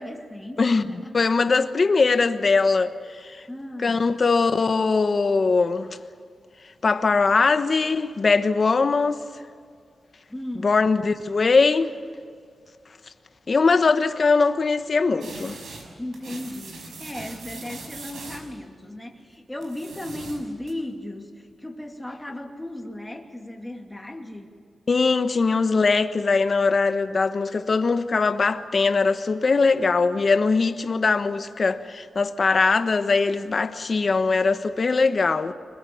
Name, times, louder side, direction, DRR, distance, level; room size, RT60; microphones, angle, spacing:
voice 1, 0.0-1.1 3.5-4.0 10.3-10.7 16.0-24.5, left 1 dB, 10° left, 2.6 m, -36 dB
voice 2, 0.6-3.4 3.8-5.9 6.8-9.2 10.6-11.9 13.5-15.6 24.9-35.5, left 4 dB, 40° left, 1.2 m, -21 dB
sound 1, 15.2-15.9 16.1-18.5 19.6-20.7, right 3 dB, 85° right, 5.9 m, -40 dB
24.5 x 22.0 x 7.2 m
wide cardioid pair, 120°, 0 cm